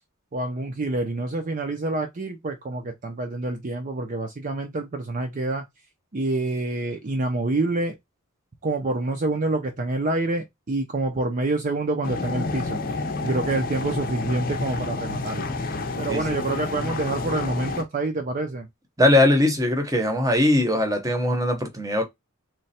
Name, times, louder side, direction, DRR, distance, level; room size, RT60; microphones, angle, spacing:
voice 1, 0.3-5.6 6.1-8.0 8.6-15.5 16.0-18.7, right 2 dB, 40° right, 0.6 m, -27 dB
sound 1, 12.0-17.8, left 3 dB, 40° left, 0.6 m, -29 dB
voice 2, 19.0-22.0, left 1 dB, 15° right, 0.9 m, -20 dB
3.2 x 2.3 x 4.1 m
head